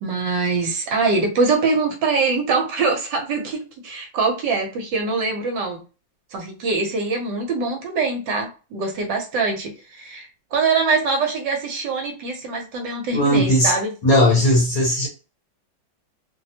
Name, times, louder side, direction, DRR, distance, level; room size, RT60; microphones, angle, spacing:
voice 1, 0.0-5.8 6.3-13.9, right 4 dB, 70° right, 2 dB, 1.2 m, -23 dB
voice 2, 13.1-13.7 14.0-15.1, equal, 55° left, -1 dB, 1.2 m, -17 dB
3.2 x 2.0 x 2.7 m, 0.33 s
omnidirectional pair, 2.1 m